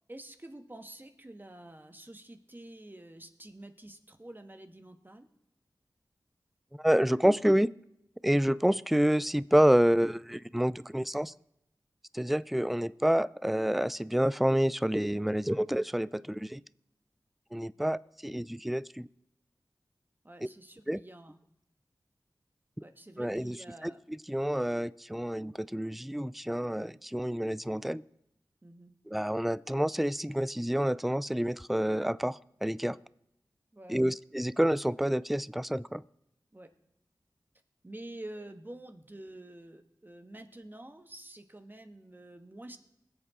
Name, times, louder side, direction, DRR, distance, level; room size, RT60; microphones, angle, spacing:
voice 1, 0.1-5.3 17.8-17.9 20.2-21.4 22.8-24.0 28.6-28.9 33.7-34.2 36.5-36.7 37.8-42.8, right 1 dB, 25° right, 7 dB, 1.3 m, -48 dB
voice 2, 6.8-7.7 8.2-11.3 12.1-16.6 17.5-19.1 20.9-21.0 23.2-23.6 23.8-23.9 24.3-28.0 29.1-33.0 33.9-36.0, equal, ahead, 19 dB, 0.3 m, -28 dB
21.0 x 8.2 x 3.7 m, 0.80 s
cardioid pair, 45°, 8 cm